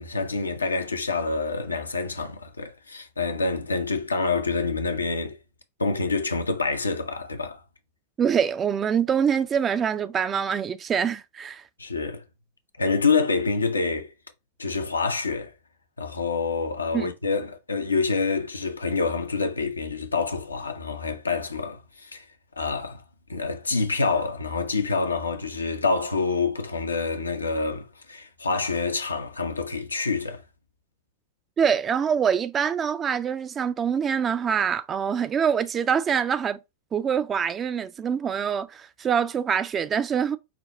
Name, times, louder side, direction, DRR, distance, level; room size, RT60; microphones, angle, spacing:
voice 1, 0.0-5.4 5.8-7.6 11.8-12.2 12.8-14.1 14.6-15.5 16.0-22.3 22.6-23.0 23.3-30.4, left 4 dB, 80° left, 0.5 m, -27 dB
voice 2, 8.2-11.6 16.9-17.1 31.6-36.6 36.9-40.4, right 7 dB, 25° right, 0.4 m, -25 dB
5.0 x 2.2 x 4.1 m
figure-of-eight pair, 90°, 0 cm